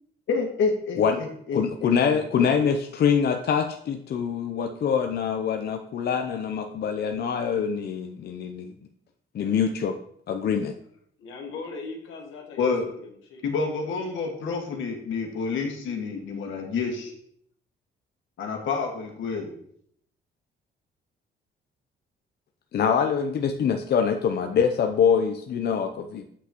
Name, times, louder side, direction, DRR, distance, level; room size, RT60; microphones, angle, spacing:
voice 1, 0.3-1.9 2.4-2.5 12.6-12.8 13.4-17.1 18.4-19.5, left 4 dB, 75° left, 1 dB, 1.7 m, -28 dB
voice 2, 1.5-8.7 9.3-10.0 10.3-10.8 22.7-26.3, left 7 dB, 55° left, 5 dB, 0.6 m, -24 dB
voice 3, 11.2-13.5 14.0-14.1, left 4 dB, 90° left, 1 dB, 1.2 m, -40 dB
8.1 x 5.7 x 3.0 m, 0.67 s
cardioid pair, 90°, 20 cm